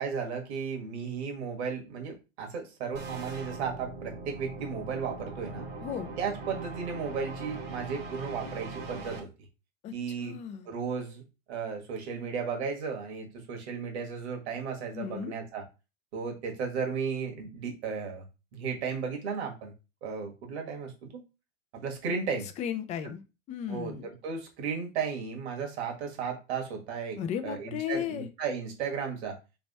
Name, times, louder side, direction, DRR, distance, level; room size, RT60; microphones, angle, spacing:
voice 1, 0.0-5.7 6.2-9.3 9.9-10.3 10.6-11.2 11.5-15.6 16.1-18.3 18.5-19.7 20.0-21.1 21.7-22.5 23.7-29.4, right 6 dB, 60° right, 3 dB, 1.6 m, -34 dB
sound 1, 2.9-9.2, right 3 dB, 25° right, 1.0 m, -41 dB
voice 2, 9.8-10.7 14.9-15.3 22.6-24.1 27.2-28.3, left 8 dB, 20° left, 9 dB, 0.4 m, -35 dB
3.5 x 3.0 x 4.1 m, 0.29 s
hypercardioid pair, 115°, 37 cm